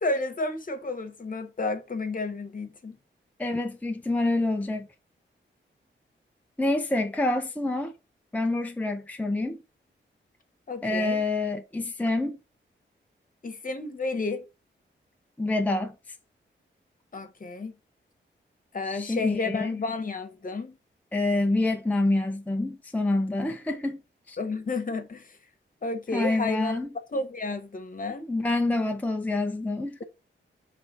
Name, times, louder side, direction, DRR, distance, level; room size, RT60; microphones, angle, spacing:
voice 1, 0.0-3.0 10.7-11.2 13.4-14.4 17.1-17.7 18.7-20.8 24.4-25.4 25.8-26.8 27.1-28.3, left 3 dB, 45° left, 1.1 m, -31 dB
voice 2, 3.4-4.9 6.6-7.9 8.3-9.6 10.8-12.4 15.4-15.9 18.9-19.7 21.1-24.0 24.3-24.4 26.1-26.9 28.3-30.0, left 2 dB, 10° left, 0.5 m, -27 dB
6.5 x 3.3 x 5.6 m
wide cardioid pair, 125°, 20 cm